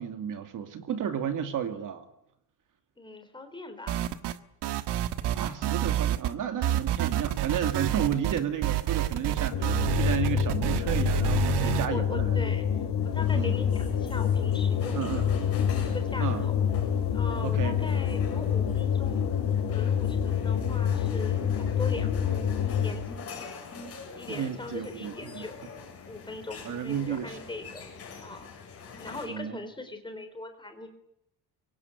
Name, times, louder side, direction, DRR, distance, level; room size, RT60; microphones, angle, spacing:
voice 1, 0.0-2.1 5.3-12.5 13.3-13.5 14.9-15.3 16.2-16.4 17.4-17.8 24.3-25.4 26.7-27.4 29.3-29.6, right 8 dB, 50° right, 7 dB, 2.5 m, -32 dB
voice 2, 3.0-4.1 11.6-15.3 15.8-16.6 17.1-19.3 19.7-23.1 24.2-25.6 26.1-27.9 28.2-28.5 29.0-30.9, left 2 dB, 10° left, 7 dB, 3.8 m, -40 dB
sound 1, 3.9-4.4 4.6-6.3 6.6-11.9, right 12 dB, 80° right, 1.5 m, -28 dB
sound 2, 9.5-23.2, left 8 dB, 60° left, 5.4 m, -27 dB
sound 3, 13.0-29.3, left 5 dB, 35° left, 7.8 m, -45 dB
24.5 x 24.0 x 9.5 m, 0.78 s
cardioid pair, 180°, 40 cm